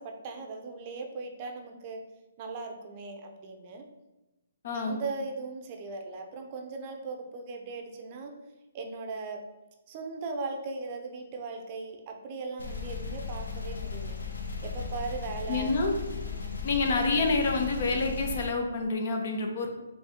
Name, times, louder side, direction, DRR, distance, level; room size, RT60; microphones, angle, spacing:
voice 1, 0.0-2.0 2.4-3.9 4.7-8.4 8.7-9.4 9.9-14.4 14.6-15.7 16.2-16.5, right 3 dB, 35° right, 4 dB, 0.5 m, -38 dB
voice 2, 4.6-5.0 15.5-15.9 16.6-19.7, left 3 dB, 50° left, 3 dB, 0.8 m, -28 dB
sound 1, 12.6-18.5, left 5 dB, 85° left, 0.8 m, -36 dB
4.2 x 2.7 x 3.6 m, 1.0 s
hypercardioid pair, 150°, 0 cm